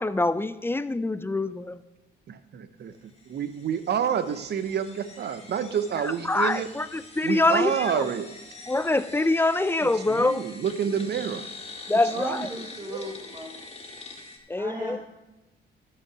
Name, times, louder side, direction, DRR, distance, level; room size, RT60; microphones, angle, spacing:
voice 1, 0.0-1.8 6.0-8.1 8.7-10.5 11.9-12.5 14.5-15.0, left 2 dB, 10° left, 15 dB, 0.5 m, -25 dB
voice 2, 2.3-6.7 7.2-8.3 9.8-11.4 12.9-13.1, right 8 dB, 55° right, 12 dB, 0.9 m, -29 dB
sound 1, 3.2-14.4, left 3 dB, 30° left, 2.3 m, -45 dB
voice 3, 10.8-11.2 11.9-13.6 14.6-15.0, right 1 dB, 20° right, -1 dB, 1.5 m, -36 dB
12.5 x 6.2 x 6.2 m, 0.99 s
cardioid pair, 90°, 20 cm